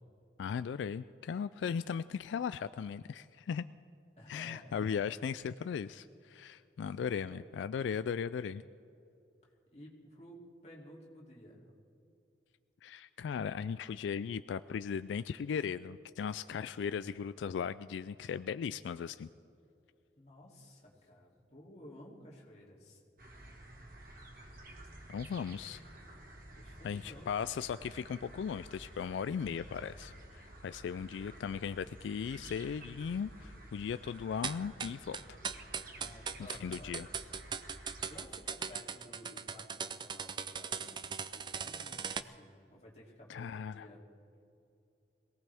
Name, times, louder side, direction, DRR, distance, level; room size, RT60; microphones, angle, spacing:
voice 1, 0.4-3.6 4.3-8.6 12.8-19.3 25.1-25.8 26.8-35.4 36.5-37.1 43.3-43.9, left 7 dB, 85° left, 14 dB, 0.3 m, -37 dB
voice 2, 4.2-4.7 6.8-7.5 9.7-11.7 20.2-23.0 26.6-27.3 36.0-36.9 38.1-41.0 41.3-44.0, left 1 dB, 35° left, -4 dB, 2.9 m, -54 dB
sound 1, 23.2-38.2, right 1 dB, 50° right, 1.8 m, -52 dB
sound 2, 34.4-42.2, right 6 dB, 25° right, 0.4 m, -39 dB
22.5 x 17.5 x 3.5 m, 2.6 s
head